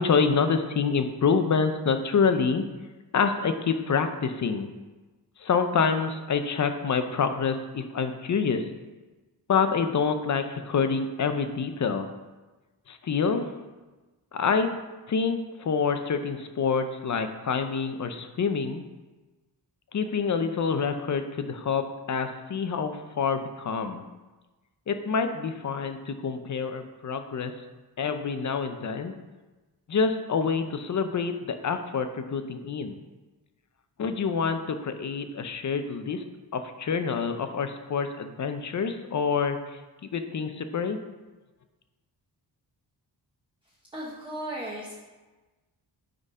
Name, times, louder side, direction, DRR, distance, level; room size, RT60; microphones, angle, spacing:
voice 1, 0.0-2.6 3.1-4.7 5.4-8.6 9.5-12.1 12.9-13.5 14.3-14.7 15.1-18.8 19.9-24.0 24.9-27.5 28.0-29.1 29.9-33.0 34.0-36.2 36.5-39.8 40.1-41.0, left 5 dB, 45° left, 8 dB, 0.6 m, -27 dB
voice 2, 43.6-44.9, right 1 dB, 10° right, -6 dB, 1.0 m, -36 dB
9.7 x 3.9 x 5.4 m, 1.2 s
wide cardioid pair, 175°, 42 cm